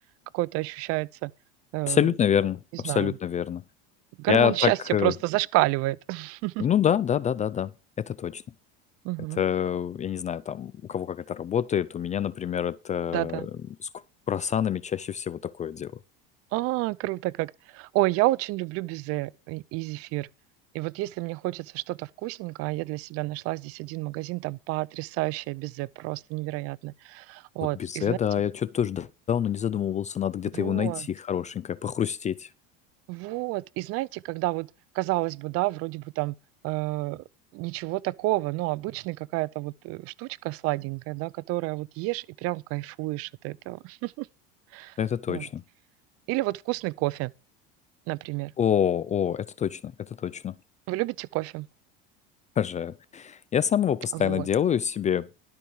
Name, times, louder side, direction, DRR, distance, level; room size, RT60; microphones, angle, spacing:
voice 1, 0.3-1.3 1.7-2.0 2.8-3.1 4.2-6.7 9.0-9.4 13.1-13.5 16.5-20.3 20.7-28.2 30.5-31.1 33.1-34.7 34.9-36.3 36.6-37.2 37.5-44.3 44.7-44.9 45.3-45.5 46.3-47.3 48.1-48.5 50.9-51.7 54.1-54.5, right 20 dB, 55° right, 0.5 m, -30 dB
voice 2, 1.9-3.6 4.3-5.1 6.6-7.7 8.0-8.4 9.3-13.5 13.8-13.9 14.3-15.9 27.7-32.5 45.0-45.6 48.6-50.6 52.6-55.3, left 9 dB, 25° left, 0.4 m, -27 dB
12.0 x 4.7 x 7.0 m
supercardioid pair, 100°, 29 cm